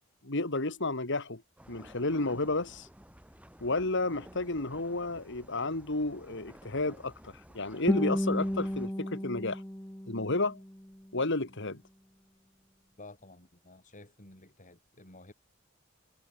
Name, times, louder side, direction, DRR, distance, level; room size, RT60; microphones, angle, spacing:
voice 1, 0.2-1.4 1.7-2.9 3.6-9.6 10.1-10.6 11.1-11.8, left 2 dB, 60° left, 2.7 m, -32 dB
sound 1, 1.6-8.9, equal, 5° right, 4.8 m, -54 dB
Guitar, 7.9-10.9, equal, 10° left, 1.8 m, -33 dB
voice 2, 13.0-15.3, left 2 dB, 40° left, 7.8 m, -52 dB
head